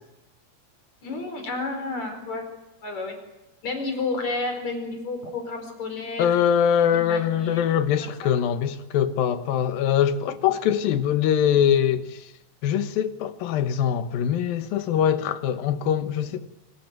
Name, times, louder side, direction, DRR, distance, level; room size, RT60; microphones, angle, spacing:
voice 1, 1.0-2.5 2.8-3.2 3.6-6.3 6.9-7.8 8.2-8.3 10.5-10.6, left 3 dB, 50° left, 5.9 m, -31 dB
voice 2, 6.2-12.3 12.6-16.5, left 9 dB, 75° left, 3.0 m, -23 dB
24.5 x 19.5 x 9.2 m
omnidirectional pair, 4.2 m